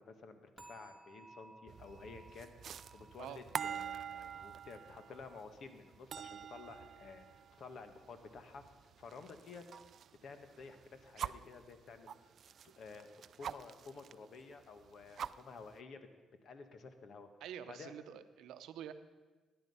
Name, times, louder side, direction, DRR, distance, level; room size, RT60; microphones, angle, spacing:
voice 1, 0.0-8.6 9.0-9.6 10.2-12.1 12.8-16.0 16.4-17.3 17.7-17.9, left 4 dB, 60° left, 8 dB, 1.4 m, -52 dB
sound 1, 0.6-7.6 7.9-8.3 8.8-8.9, right 2 dB, ahead, 2.0 m, -62 dB
sound 2, 1.7-10.1 10.4-11.5 12.1-14.1 14.5-14.6 14.9-15.8, right 8 dB, 60° right, 0.4 m, -46 dB
voice 2, 17.4-18.9, right 10 dB, 85° right, 10 dB, 0.8 m, -47 dB
16.0 x 10.0 x 5.6 m, 1.3 s
cardioid pair, 90°, 0 cm